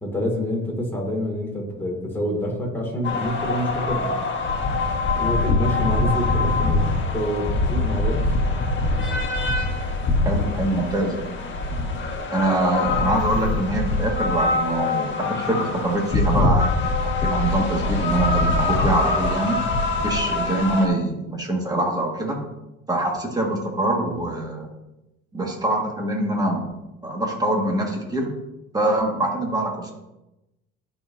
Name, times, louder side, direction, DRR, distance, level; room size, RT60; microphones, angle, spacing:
voice 1, 0.0-4.1 5.1-8.2, left 1 dB, 5° left, -2 dB, 2.4 m, -27 dB
sound 1, 3.0-20.9, left 2 dB, 40° left, 1.6 m, -23 dB
voice 2, 10.2-11.2 12.3-19.6 20.0-22.4 22.9-24.7 25.3-26.6 27.0-28.3 28.7-29.9, right 1 dB, 15° right, 0 dB, 1.9 m, -24 dB
12.5 x 5.6 x 2.8 m, 0.95 s
cardioid pair, 115°, 29 cm